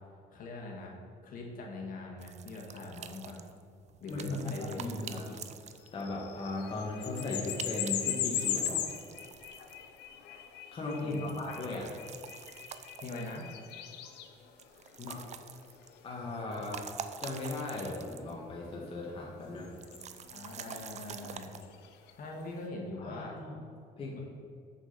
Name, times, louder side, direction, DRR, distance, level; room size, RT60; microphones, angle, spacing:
voice 1, 0.3-0.9 1.2-3.4 4.0-5.3 11.0-11.4 13.0-13.5 20.3-21.5 22.2-23.4 24.1-24.2, left 2 dB, 55° left, -1 dB, 1.8 m, -42 dB
sound 1, 2.2-6.2 7.0-10.0 10.9-13.7 14.6-16.0 16.4-18.4 18.7-18.8 19.8-21.6, right 8 dB, 40° right, 0.5 m, -47 dB
voice 2, 4.1-5.2 5.9-8.8 10.7-11.9 15.0-15.2 16.0-16.9 17.2-19.7 23.0-23.6 24.0-24.2, left 2 dB, 35° left, -4 dB, 1.4 m, -37 dB
sound 2, 5.8-16.4 18.2-18.3 19.4-22.4, left 10 dB, 80° left, 0.7 m, -39 dB
6.9 x 5.8 x 5.7 m, 2.3 s
cardioid pair, 110°, 17 cm